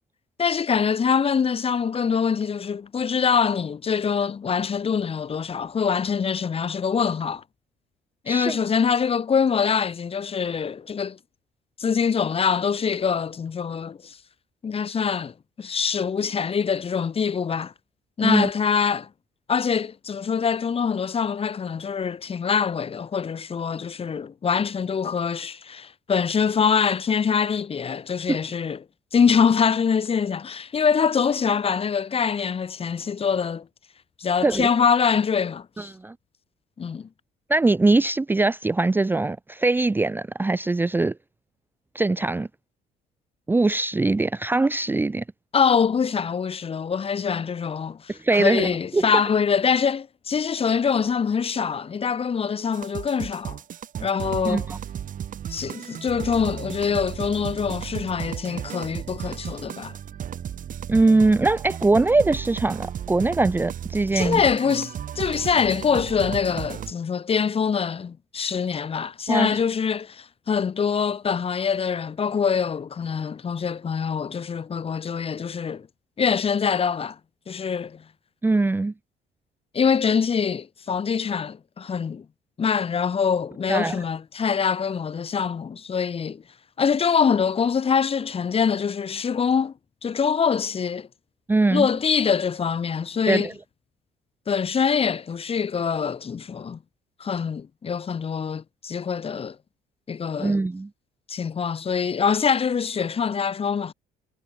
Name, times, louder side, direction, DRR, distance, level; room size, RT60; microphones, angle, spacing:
voice 1, 0.4-7.4 8.3-11.2 11.8-14.2 14.6-17.7 18.2-19.1 19.5-28.8 29.1-33.7 34.2-35.7 36.8-37.1 45.5-53.6 54.0-54.7 55.5-59.9 64.1-75.9 76.2-77.2 77.5-78.0 79.7-82.3 82.6-86.4 86.8-89.7 90.0-91.1 91.7-93.5 94.5-96.8 97.2-99.6 100.1-100.6 101.3-103.9, left 6 dB, 35° left, 2.4 m, -24 dB
voice 2, 8.3-8.6 18.2-18.5 28.3-28.4 34.4-34.7 35.8-36.1 37.5-41.1 41.9-42.5 43.5-45.2 48.1-49.1 54.4-54.8 60.9-64.4 69.3-69.6 78.4-78.9 83.7-84.0 91.5-91.9 93.3-93.5 100.4-100.9, right 3 dB, 10° right, 0.7 m, -22 dB
sound 1, 52.7-66.9, right 9 dB, 50° right, 7.2 m, -34 dB
cardioid pair, 110°, 17 cm